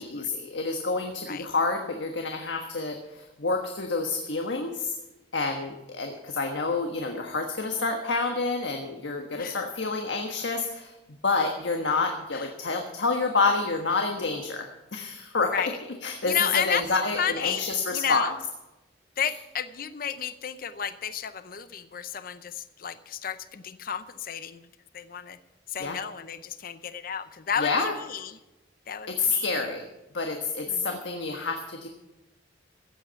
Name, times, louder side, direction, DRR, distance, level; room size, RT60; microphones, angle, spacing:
voice 1, 0.0-4.9 5.3-10.9 11.2-14.6 14.9-15.5 16.0-18.3 25.8-26.0 27.6-27.9 29.1-29.8 30.1-31.9, left 3 dB, 90° left, 3 dB, 1.4 m, -28 dB
voice 2, 9.3-9.6 12.3-12.5 15.5-15.8 16.2-17.6 17.9-18.4 19.2-24.6 24.9-25.4 25.7-28.4 28.9-29.5 30.7-31.0, left 8 dB, 50° left, 13 dB, 0.6 m, -32 dB
15.5 x 8.2 x 7.0 m, 1.0 s
head